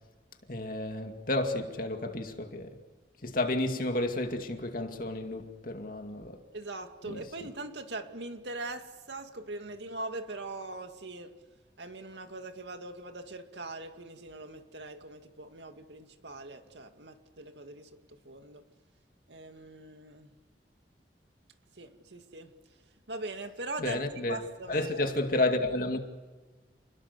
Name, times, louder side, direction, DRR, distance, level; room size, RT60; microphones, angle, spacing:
voice 1, 0.5-2.7 3.2-6.4 7.1-7.2 23.8-24.4 24.7-26.1, left 2 dB, 50° left, 2.4 m, -31 dB
voice 2, 6.5-11.3 11.8-17.9 18.3-18.6 19.3-20.3 21.8-22.5 23.1-25.2, right 2 dB, 80° right, 2.2 m, -41 dB
29.5 x 21.0 x 6.9 m
head